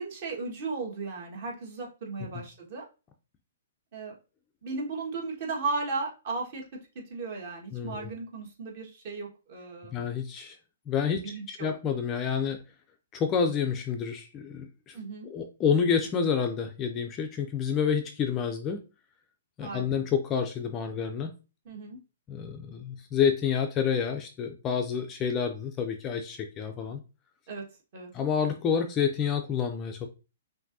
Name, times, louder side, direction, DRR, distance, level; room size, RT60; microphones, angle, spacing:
voice 1, 0.0-2.8 3.9-4.1 4.6-6.6 7.1-10.0 11.1-11.7 14.9-15.3 19.6-20.0 21.6-22.0 27.5-27.6 27.9-28.1, right 3 dB, 40° right, -1 dB, 1.5 m, -35 dB
voice 2, 7.7-8.1 9.9-10.6 10.9-12.6 13.1-15.0 15.3-18.8 19.6-21.3 22.3-27.0 28.1-30.1, left 7 dB, 20° left, 5 dB, 0.4 m, -28 dB
5.8 x 2.6 x 2.6 m, 0.31 s
hypercardioid pair, 165°, 0 cm